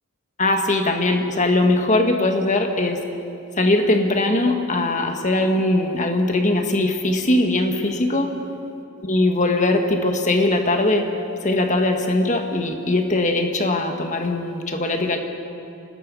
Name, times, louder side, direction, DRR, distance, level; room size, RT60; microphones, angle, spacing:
voice 1, 0.4-3.0 3.6-8.3 9.0-11.1 11.4-15.2, left 2 dB, 35° left, 4 dB, 1.6 m, -20 dB
25.5 x 19.0 x 5.5 m, 2.7 s
head